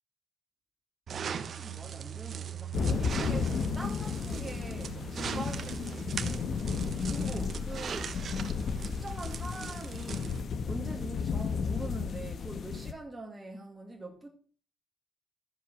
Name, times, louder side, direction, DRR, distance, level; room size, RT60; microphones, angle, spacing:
sound 1, 1.1-10.4, right 7 dB, 55° right, 1.2 m, -40 dB
voice 1, 1.6-6.7 7.1-8.2 8.8-14.3, right 2 dB, 15° right, 2.3 m, -43 dB
sound 2, 2.7-12.9, left 5 dB, 55° left, 1.3 m, -33 dB
12.5 x 7.4 x 6.3 m
cardioid pair, 90°, 0 cm